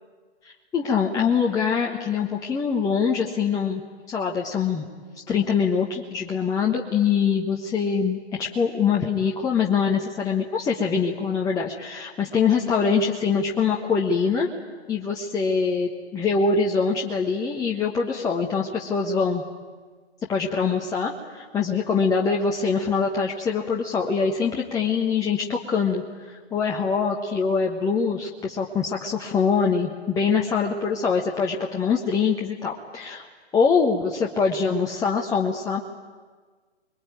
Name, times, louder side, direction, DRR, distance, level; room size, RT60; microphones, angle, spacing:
voice 1, 0.4-3.8 4.1-4.8 5.3-14.5 14.9-19.4 20.3-33.3 33.5-35.8, left 5 dB, 10° left, -1 dB, 1.3 m, -24 dB
25.5 x 22.5 x 9.3 m, 1.5 s
figure-of-eight pair, 130°, 35 cm